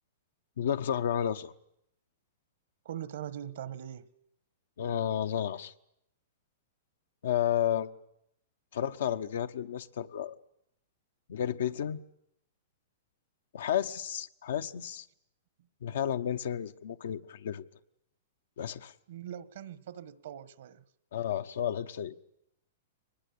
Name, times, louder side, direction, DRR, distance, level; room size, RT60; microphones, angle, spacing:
voice 1, 0.6-1.5 4.8-5.7 7.2-7.9 8.7-10.3 11.3-12.0 13.5-15.1 15.8-17.7 18.6-18.9 21.1-22.1, left 9 dB, 75° left, 1.1 m, -32 dB
voice 2, 2.8-4.1 19.1-20.8, right 10 dB, 70° right, 1.4 m, -41 dB
23.5 x 20.0 x 8.6 m
hypercardioid pair, 125°, 0 cm